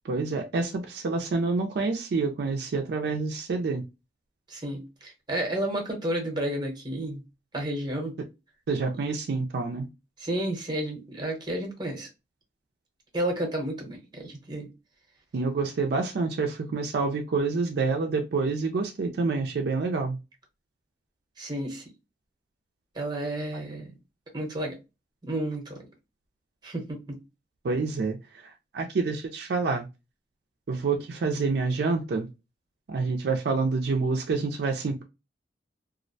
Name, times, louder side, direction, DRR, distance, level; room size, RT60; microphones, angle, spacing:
voice 1, 0.1-3.8 8.7-9.9 15.3-20.2 27.6-28.2 28.7-29.9 30.7-32.3 32.9-35.0, right 4 dB, 65° right, 0.4 m, -27 dB
voice 2, 4.5-7.2 7.5-8.1 10.2-12.1 13.1-14.7 21.4-21.8 22.9-23.9 24.3-24.7 25.2-25.8 26.6-27.2, right 1 dB, 25° right, 0.8 m, -31 dB
2.4 x 2.0 x 2.6 m
head